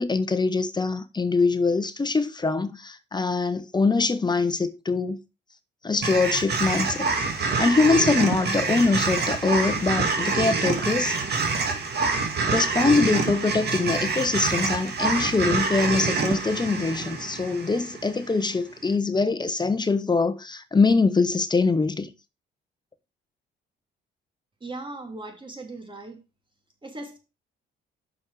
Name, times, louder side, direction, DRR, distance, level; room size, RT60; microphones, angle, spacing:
voice 1, 0.0-5.2 5.8-7.0 7.4-11.4 12.5-22.1, left 3 dB, 20° left, 0.9 m, -23 dB
sound 1, 6.0-18.3, right 4 dB, 55° right, 2.0 m, -26 dB
voice 2, 24.6-26.2 26.8-27.2, right 2 dB, 25° right, 2.5 m, -38 dB
6.3 x 6.3 x 4.7 m
cardioid pair, 90°, 20 cm